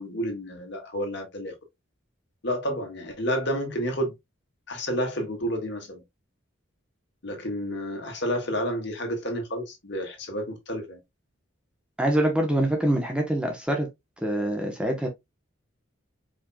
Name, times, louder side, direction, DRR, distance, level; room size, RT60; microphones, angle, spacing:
voice 1, 0.0-1.5 2.4-4.2 4.7-6.0 7.2-11.0, equal, 55° left, 1.7 m, -30 dB
voice 2, 12.0-13.9 14.2-15.1, right 1 dB, 5° right, 0.9 m, -25 dB
4.9 x 4.4 x 2.2 m
head